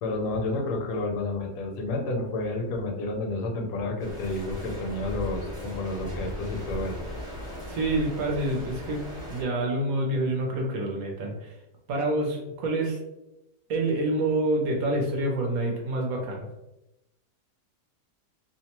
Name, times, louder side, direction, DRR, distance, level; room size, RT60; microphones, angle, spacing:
voice 1, 0.0-7.0, left 2 dB, 80° left, 2 dB, 1.1 m, -30 dB
sound 1, 4.0-9.4, equal, 5° right, 0.5 m, -37 dB
voice 2, 7.7-9.0 9.3-11.5 11.9-13.0 13.7-16.5, right 2 dB, 70° right, 0 dB, 1.0 m, -27 dB
2.8 x 2.1 x 2.8 m, 0.91 s
omnidirectional pair, 1.8 m